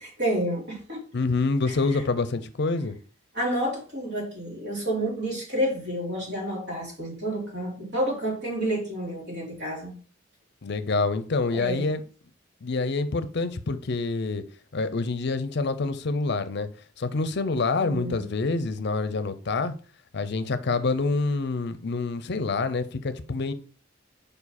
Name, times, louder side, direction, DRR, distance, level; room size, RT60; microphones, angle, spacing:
voice 1, 0.2-1.0 1.7-2.0 3.3-9.9 11.5-11.9 17.8-18.2, right 1 dB, 60° right, 3.0 m, -30 dB
voice 2, 1.1-3.0 10.6-12.0 12.6-14.4 14.7-16.7 17.0-19.7 20.1-23.5, left 3 dB, 55° left, 0.6 m, -27 dB
5.1 x 4.8 x 4.1 m
head